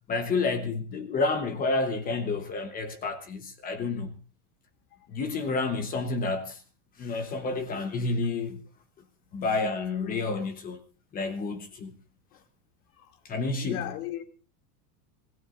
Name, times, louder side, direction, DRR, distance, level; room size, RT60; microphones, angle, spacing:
voice 1, 0.1-4.2 5.1-6.6 7.0-8.6 9.3-10.8 11.1-11.9 13.2-13.9, left 3 dB, 20° left, 1.0 m, -29 dB
voice 2, 13.6-14.2, left 12 dB, 70° left, 2.6 m, -36 dB
26.0 x 17.5 x 2.5 m
supercardioid pair, 170°, 45 cm